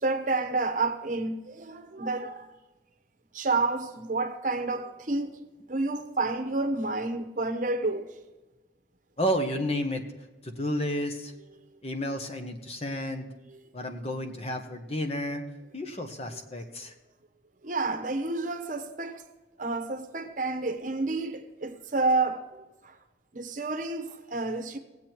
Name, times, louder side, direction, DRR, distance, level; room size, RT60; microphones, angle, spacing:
voice 1, 0.0-2.5 3.3-5.4 5.7-8.1 13.5-13.6 17.6-19.2 19.6-23.0 23.3-24.8, right 3 dB, 45° right, 0.9 m, -30 dB
voice 2, 9.2-10.0 10.4-11.3 11.8-13.3 13.7-15.4 15.7-16.9, equal, 35° left, 1.2 m, -31 dB
18.5 x 8.1 x 4.5 m
head